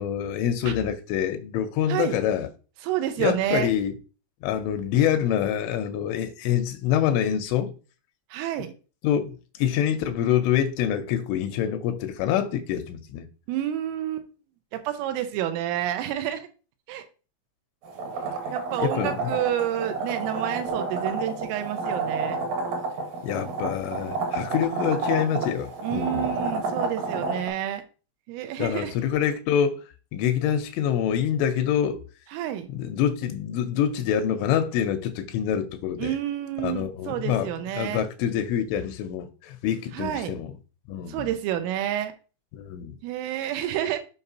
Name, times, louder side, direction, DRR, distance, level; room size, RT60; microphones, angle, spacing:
voice 1, 0.0-2.5 3.2-3.9 4.4-7.7 9.0-13.3 18.8-19.3 23.2-26.4 28.6-29.8 30.1-32.0 32.7-36.1 36.6-37.5 37.8-40.5 40.9-41.3 42.5-42.9, left 9 dB, 80° left, 3.0 m, -26 dB
voice 2, 2.8-3.7 8.3-8.7 13.5-14.3 14.7-16.5 16.9-17.0 18.5-22.4 25.8-27.8 28.3-28.9 32.3-32.7 36.0-38.1 39.9-40.4 41.1-42.1 43.0-44.0, right 11 dB, 85° right, 3.2 m, -29 dB
sound 1, 17.8-27.5, right 3 dB, 65° right, 2.4 m, -30 dB
8.0 x 5.3 x 2.8 m
omnidirectional pair, 5.8 m